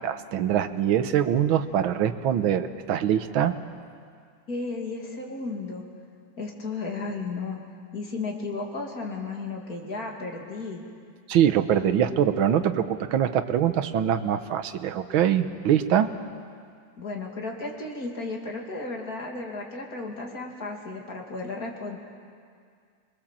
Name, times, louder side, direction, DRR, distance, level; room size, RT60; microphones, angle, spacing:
voice 1, 0.0-3.5 11.3-16.1, right 9 dB, 80° right, 10 dB, 1.7 m, -23 dB
voice 2, 4.5-5.8 6.4-7.6 7.9-10.8 17.0-22.0, left 3 dB, 45° left, 0 dB, 3.0 m, -34 dB
25.0 x 22.0 x 7.5 m, 2.2 s
omnidirectional pair, 2.2 m